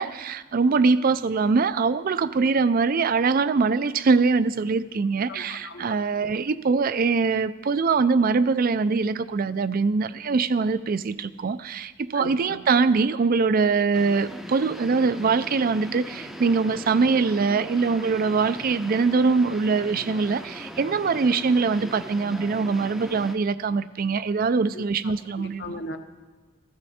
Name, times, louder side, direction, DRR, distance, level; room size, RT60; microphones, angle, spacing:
voice 1, 0.0-25.8, right 4 dB, 45° right, 15 dB, 0.4 m, -23 dB
voice 2, 5.3-5.9 12.1-12.6 24.7-25.1 25.6-26.0, left 1 dB, 55° left, 6 dB, 1.1 m, -38 dB
sound 1, 13.9-23.4, equal, ahead, 0.6 m, -39 dB
15.5 x 13.0 x 4.3 m, 1.4 s
head